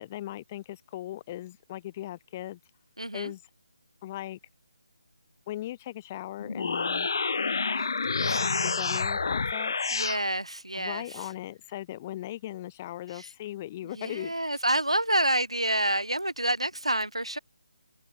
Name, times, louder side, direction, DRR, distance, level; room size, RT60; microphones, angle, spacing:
voice 1, 0.0-2.6 3.1-3.4 4.0-4.4 5.5-7.1 8.4-9.7 10.7-14.3, left 14 dB, 25° left, 5.0 m, -38 dB
voice 2, 3.0-3.3 8.2-8.6 9.9-11.3 13.1-13.3 13.8-17.4, right 1 dB, 80° right, 2.6 m, -28 dB
sound 1, 6.4-10.2, left 4 dB, 50° left, 1.2 m, -28 dB
open air
figure-of-eight pair, 150°, 3 cm